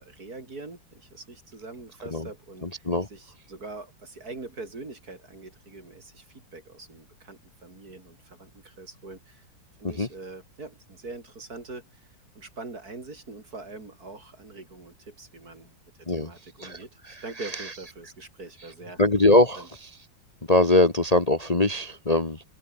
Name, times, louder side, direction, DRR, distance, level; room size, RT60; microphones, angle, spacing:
voice 1, 0.0-9.4 9.8-12.1 12.3-15.8 16.2-19.0 19.6-19.7, right 3 dB, 50° right, 4.5 m, -43 dB
voice 2, 19.0-19.6 20.5-22.4, left 2 dB, 20° left, 1.6 m, -21 dB
omnidirectional pair, 2.1 m